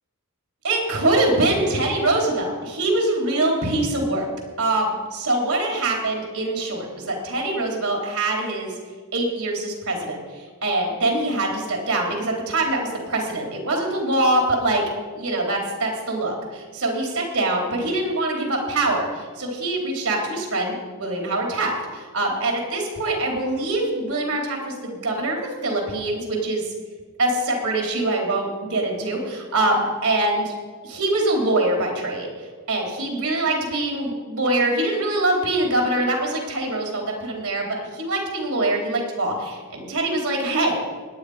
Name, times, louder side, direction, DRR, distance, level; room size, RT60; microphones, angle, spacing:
voice 1, 0.6-4.3 4.6-8.7 9.1-10.2 10.6-12.8 13.1-14.8 15.1-26.6 27.2-30.5 30.8-32.3 32.7-40.8, right 2 dB, 80° right, 0 dB, 3.9 m, -24 dB
17.0 x 10.5 x 5.1 m, 1.5 s
head